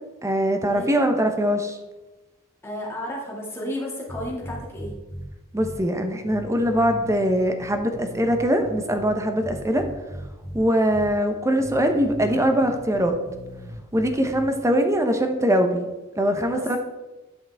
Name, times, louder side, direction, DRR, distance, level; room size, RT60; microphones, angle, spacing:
voice 1, 0.2-1.8 5.5-9.8 10.5-13.2 13.9-15.9 16.2-16.8, equal, 15° right, 6 dB, 0.8 m, -22 dB
voice 2, 2.6-4.9 16.5-16.8, left 1 dB, 10° left, -4 dB, 2.0 m, -32 dB
sound 1, 4.1-5.3 5.6-5.8 6.2-9.1 9.4-10.6 10.9-11.1 11.6-14.4, equal, 30° left, 2.9 m, -38 dB
10.0 x 5.7 x 3.4 m, 1.1 s
head